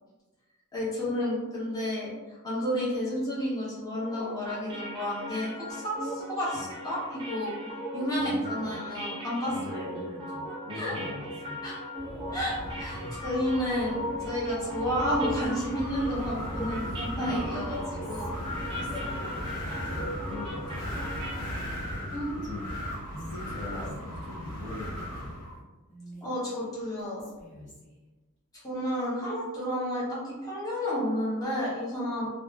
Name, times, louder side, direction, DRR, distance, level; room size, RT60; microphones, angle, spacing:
voice 1, 0.7-7.6 7.9-9.9 10.7-10.9 11.6-11.7 12.3-18.3 18.8-19.1 22.1-22.6 26.2-27.2 28.6-32.3, equal, 15° left, -9 dB, 0.9 m, -31 dB
sound 1, 3.9-21.8, equal, 25° right, 0.5 m, -39 dB
voice 2, 8.2-8.7 9.5-11.7 13.0-13.1 18.3-18.4 18.8-20.9 21.8-22.6 23.1-25.4 27.5-27.8, left 2 dB, 50° left, -6 dB, 0.8 m, -42 dB
Wind, 12.0-25.6, equal, 90° left, 0.8 m, -37 dB
Whispering, 16.5-19.3 21.4-22.1 22.4-22.5 22.9-24.1 25.9-28.0, right 2 dB, 35° left, 1.4 m, -50 dB
2.5 x 2.4 x 2.2 m, 1.2 s
head